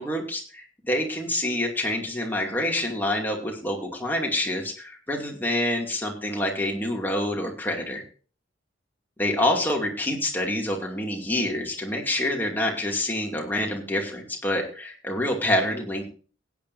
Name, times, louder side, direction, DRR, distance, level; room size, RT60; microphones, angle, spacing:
voice 1, 0.0-8.0 9.2-16.1, left 1 dB, 10° left, 0 dB, 2.5 m, -27 dB
17.0 x 9.4 x 2.7 m, 0.39 s
head